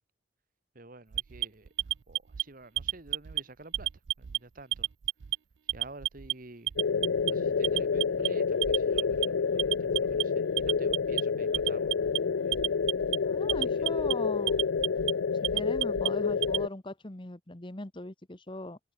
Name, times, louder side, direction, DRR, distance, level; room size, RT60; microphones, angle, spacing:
voice 1, 0.7-1.7 2.1-3.9 4.2-4.9 5.7-6.7 7.3-12.6 13.5-14.1, right 2 dB, 45° right, 1.7 m, -50 dB
Alarm, 1.1-2.4 2.8-3.4 3.7-4.4 4.7-5.4 5.7-6.3 6.7-7.3 7.6-8.3 8.6-9.3 9.6-10.2 10.6-11.2 11.5-12.2 12.5-13.2 13.5-14.1 14.5-15.1 15.4-16.6, right 15 dB, 70° right, 0.4 m, -30 dB
sound 1, 6.8-16.7, left 5 dB, 80° left, 0.5 m, -29 dB
voice 2, 13.2-14.7 15.5-18.8, left 2 dB, 25° left, 1.2 m, -39 dB
head